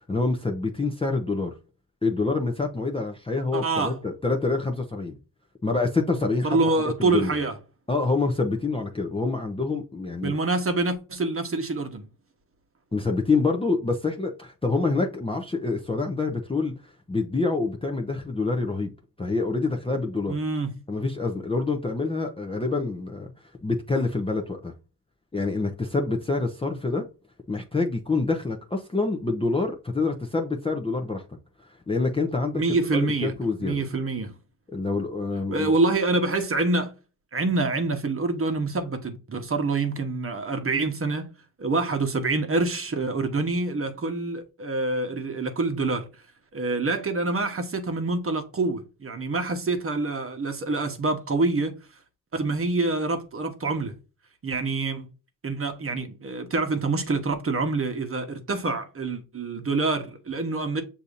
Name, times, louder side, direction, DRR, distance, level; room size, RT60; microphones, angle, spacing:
voice 1, 0.1-1.5 2.0-5.2 5.6-6.6 7.0-7.4 7.9-10.3 12.9-16.7 17.1-18.9 19.2-20.4 20.9-23.3 23.6-24.7 25.3-27.1 27.5-31.2 31.9-32.6 32.9-33.8 34.7-35.7, left 3 dB, 15° left, 0.6 m, -26 dB
voice 2, 3.5-4.0 6.4-7.5 10.2-12.1 20.3-20.7 32.5-33.3 33.6-34.3 35.5-36.9 37.3-41.3 41.6-46.1 46.5-51.7 52.3-53.9 54.4-55.1 55.4-60.8, right 3 dB, 30° right, 1.0 m, -26 dB
6.7 x 2.8 x 2.4 m
cardioid pair, 95°, 44 cm